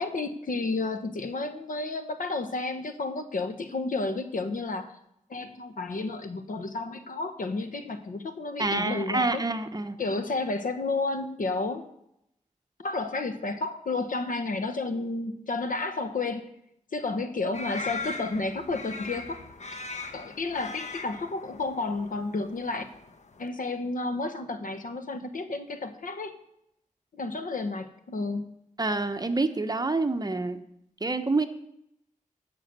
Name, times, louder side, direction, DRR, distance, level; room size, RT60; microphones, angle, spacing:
voice 1, 0.0-4.9 5.3-9.4 10.0-11.9 12.8-16.5 16.9-19.4 20.1-22.8 23.4-26.4 27.1-28.5, left 3 dB, 80° left, 8 dB, 1.2 m, -31 dB
voice 2, 8.6-10.0 28.8-30.6 31.0-31.5, right 3 dB, 30° right, 8 dB, 1.0 m, -27 dB
sound 1, 17.5-23.4, left 3 dB, 55° left, 1.2 m, -40 dB
16.0 x 6.1 x 6.9 m, 0.78 s
wide cardioid pair, 90°, 14 cm